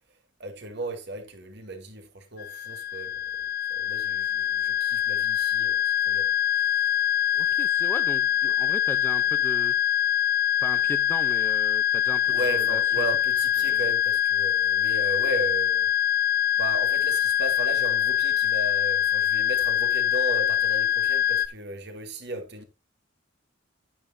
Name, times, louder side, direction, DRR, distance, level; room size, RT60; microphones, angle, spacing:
voice 1, 0.4-3.4 3.7-6.8 12.3-15.9 16.6-22.6, right 2 dB, 55° right, 2.3 m, -35 dB
sound 1, 2.4-21.5, left 10 dB, 50° left, 0.7 m, -24 dB
voice 2, 7.3-9.7 10.6-13.1 13.6-13.8, left 1 dB, 10° left, 0.7 m, -38 dB
10.0 x 9.8 x 2.8 m
head